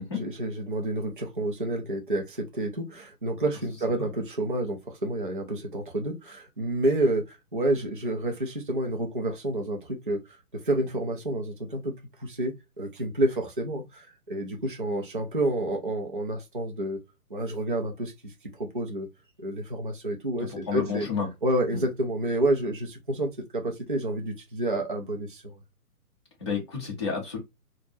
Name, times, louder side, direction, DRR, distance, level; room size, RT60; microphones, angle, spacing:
voice 1, 0.1-10.2 10.6-11.9 12.2-17.0 17.3-18.3 18.6-19.1 19.4-21.1 21.4-25.6, right 1 dB, 35° right, 0.4 m, -29 dB
voice 2, 20.4-21.3 21.7-21.8 26.4-27.4, left 6 dB, 20° left, 0.7 m, -31 dB
3.3 x 2.1 x 2.6 m
hypercardioid pair, 165°, 47 cm